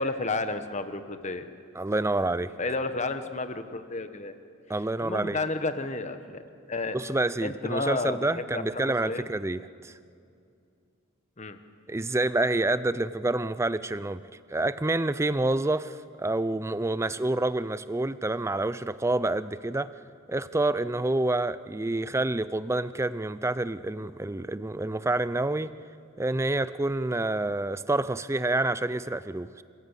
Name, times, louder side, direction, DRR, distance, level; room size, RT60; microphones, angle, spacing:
voice 1, 0.0-1.5 2.6-4.3 5.0-6.4 6.7-7.0 7.4-9.3 11.4-11.6, left 3 dB, 35° left, 9 dB, 1.2 m, -31 dB
voice 2, 1.8-2.5 4.7-5.4 6.9-9.9 11.9-14.2 14.5-19.9 20.3-25.7 26.2-29.6, right 2 dB, 15° right, 15 dB, 0.5 m, -28 dB
28.5 x 16.0 x 8.3 m, 2.5 s
head